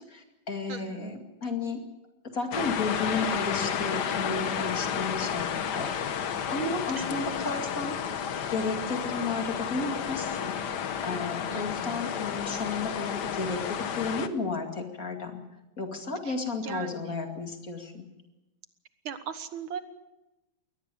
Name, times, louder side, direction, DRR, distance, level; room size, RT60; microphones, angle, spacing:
voice 1, 0.0-1.8 2.3-8.0 8.5-10.6 11.0-15.4 15.8-18.0, left 3 dB, 45° left, 4 dB, 2.7 m, -33 dB
voice 2, 0.7-1.2 7.0-7.2 11.5-12.0 16.2-16.4 16.6-17.2 19.0-19.8, right 7 dB, 85° right, 10 dB, 2.2 m, -39 dB
sound 1, 2.5-14.3, left 8 dB, 60° left, 1.6 m, -31 dB
22.5 x 18.5 x 6.9 m, 0.99 s
omnidirectional pair, 2.1 m